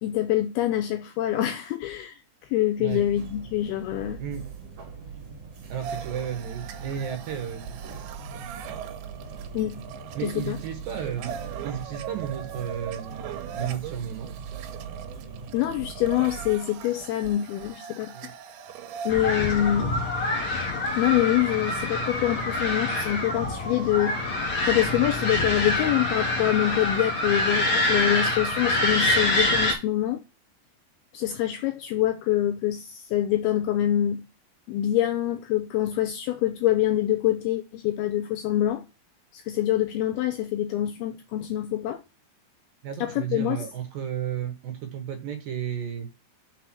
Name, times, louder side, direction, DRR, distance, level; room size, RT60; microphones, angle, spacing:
voice 1, 0.0-2.2 2.5-4.2 9.5-9.9 10.2-10.6 15.5-18.1 19.1-20.0 21.0-24.3 24.7-30.2 31.1-34.2 34.7-38.8 39.3-42.0 43.0-43.6, left 12 dB, 85° left, 2.2 m, -25 dB
sound 1, 2.9-16.5, right 6 dB, 50° right, 2.1 m, -41 dB
voice 2, 5.7-8.8 10.2-11.4 11.6-13.2 13.5-14.3 18.1-18.3 28.6-28.7 42.8-46.1, right 9 dB, 65° right, 2.6 m, -33 dB
sound 2, 5.8-19.1, right 8 dB, 90° right, 3.3 m, -40 dB
sound 3, 19.1-29.7, left 1 dB, 40° left, 2.6 m, -26 dB
5.9 x 4.9 x 6.0 m
omnidirectional pair, 5.0 m